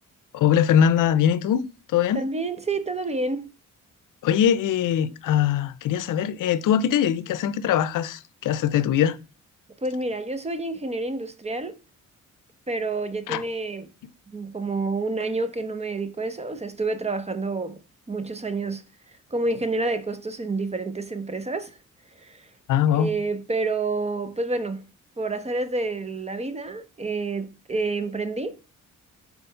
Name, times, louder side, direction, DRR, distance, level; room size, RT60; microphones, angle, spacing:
voice 1, 0.3-1.6 1.9-2.2 4.2-9.2 13.3-13.4 22.7-23.1, left 9 dB, 85° left, 0.6 m, -21 dB
voice 2, 2.1-3.5 9.8-11.8 12.7-13.9 14.3-17.8 18.1-18.8 19.3-21.8 22.2-22.5 22.9-24.9 25.2-28.6, right 3 dB, 20° right, 0.8 m, -28 dB
4.3 x 4.0 x 5.5 m
cardioid pair, 75°, 31 cm